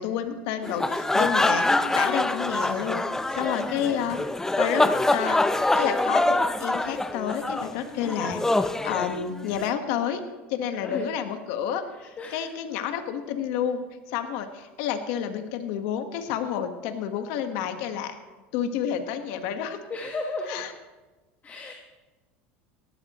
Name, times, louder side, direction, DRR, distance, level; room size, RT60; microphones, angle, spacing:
voice 1, 0.0-1.6 1.9-3.0 3.3-4.2 4.6-5.4 5.7-10.2 10.5-11.8 12.3-18.1 18.5-19.8 20.5-20.7, left 9 dB, 70° left, 7 dB, 1.4 m, -30 dB
sound 1, 0.6-9.7, left 2 dB, 10° left, 0.6 m, -25 dB
voice 2, 10.7-11.1 11.9-12.5 19.9-20.7 21.4-21.7, left 3 dB, 25° left, 2 dB, 1.3 m, -34 dB
18.0 x 12.5 x 3.1 m, 1.2 s
supercardioid pair, 105°, 6 cm